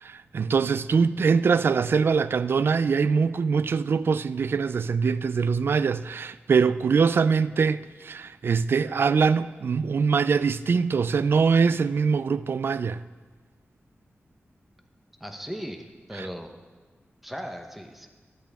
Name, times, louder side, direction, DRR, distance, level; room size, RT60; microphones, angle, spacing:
voice 1, 0.0-13.0 16.1-16.3, right 5 dB, 60° right, 0.3 m, -23 dB
voice 2, 15.2-16.5 17.2-18.1, equal, 5° right, 0.9 m, -37 dB
13.5 x 12.0 x 3.5 m
wide cardioid pair, 140°, 4 cm